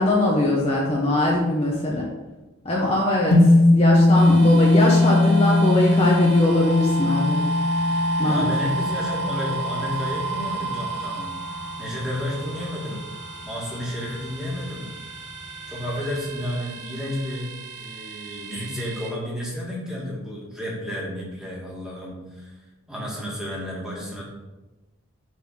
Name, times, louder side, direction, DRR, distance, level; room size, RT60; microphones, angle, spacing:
voice 1, 0.0-2.0 2.6-7.4 8.2-8.5, left 1 dB, 30° left, -4 dB, 1.0 m, -22 dB
sound 1, 3.3-11.7, left 2 dB, 75° left, 2.3 m, -19 dB
sound 2, 4.1-19.1, right 1 dB, 55° right, 1.5 m, -32 dB
voice 2, 8.2-14.9 15.7-22.5 22.9-24.2, left 1 dB, 5° right, -5 dB, 1.9 m, -32 dB
7.3 x 4.2 x 5.8 m, 1.1 s
head